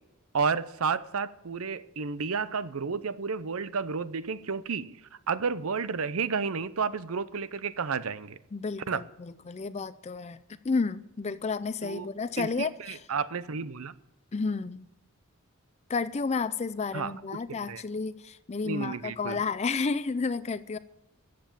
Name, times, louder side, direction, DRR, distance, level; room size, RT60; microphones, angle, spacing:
voice 1, 0.3-5.0 5.3-8.4 8.9-9.0 11.8-12.1 12.4-12.5 12.8-13.9 16.9-17.1 17.7-17.8 18.6-19.4, right 5 dB, 70° right, 0.6 m, -31 dB
voice 2, 8.5-10.4 10.6-13.0 14.3-14.9 15.9-20.8, left 4 dB, 30° left, 0.4 m, -31 dB
14.5 x 7.6 x 7.3 m
head